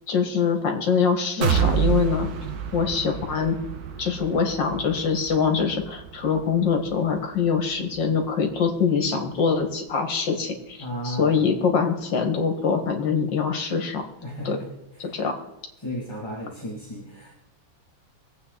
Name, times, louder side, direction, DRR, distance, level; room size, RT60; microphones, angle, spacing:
voice 1, 0.1-2.3 2.7-3.6 4.0-10.8 11.0-14.0 14.5-14.6 15.0-15.4, left 6 dB, 65° left, 3 dB, 2.5 m, -24 dB
sound 1, 1.4-9.2 9.6-9.7 10.1-10.2, right 8 dB, 55° right, 1.3 m, -29 dB
voice 2, 10.8-11.5 14.2-14.7 15.0-15.2 15.8-17.3, equal, 15° left, -4 dB, 2.6 m, -34 dB
23.0 x 8.5 x 4.1 m, 0.88 s
omnidirectional pair, 2.1 m